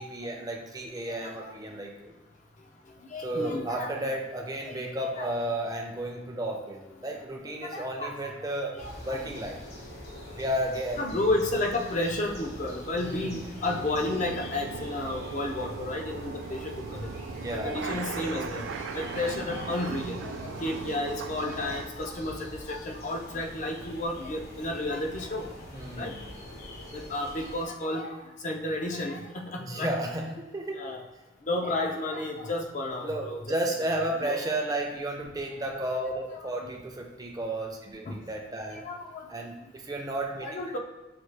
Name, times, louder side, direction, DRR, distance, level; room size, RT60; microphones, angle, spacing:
voice 1, 0.0-2.1 3.2-8.8 9.0-9.6 10.4-11.0 13.0-13.4 17.3-17.8 25.7-26.2 29.6-30.9 33.0-38.8 39.3-40.5, right 1 dB, 20° right, 1 dB, 0.6 m, -33 dB
voice 2, 3.1-3.9 5.1-5.3 7.6-8.3 8.8-9.3 11.0-16.7 17.0-17.2 17.5-18.6 18.9-20.3 20.6-25.5 26.0-26.1 26.9-28.1 28.4-29.9 30.8-31.1 31.5-33.4 34.2-34.4 36.3-36.5 38.1-38.2 38.8-39.3 40.4-40.8, left 2 dB, 40° left, 2 dB, 0.5 m, -32 dB
sound 1, 8.8-27.7, left 1 dB, 60° left, 1.2 m, -44 dB
sound 2, 13.7-21.8, right 5 dB, 75° right, 0.3 m, -38 dB
5.9 x 2.4 x 3.2 m, 1.2 s
head